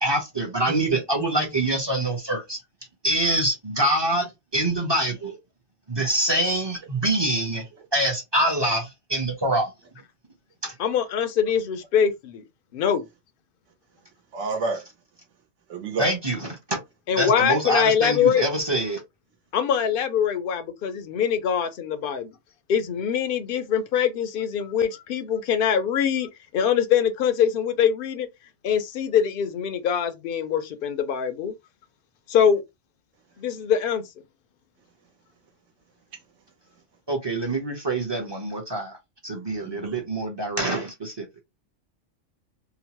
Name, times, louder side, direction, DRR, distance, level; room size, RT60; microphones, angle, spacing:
voice 1, 0.0-2.6 3.0-5.4 5.9-7.6 7.9-9.7 10.6-10.7 16.0-16.8 17.2-19.0 37.1-39.0 39.2-41.2, right 1 dB, 25° right, 0.6 m, -25 dB
voice 2, 0.7-1.5 14.3-14.8 15.7-16.1 39.6-39.9, right 3 dB, 75° right, 1.2 m, -30 dB
voice 3, 10.8-12.4 12.7-13.1 17.1-18.4 19.5-22.3 22.7-28.3 28.6-31.5 32.3-32.6 33.4-34.0, left 8 dB, 60° left, 0.6 m, -23 dB
2.8 x 2.0 x 2.9 m
omnidirectional pair, 1.3 m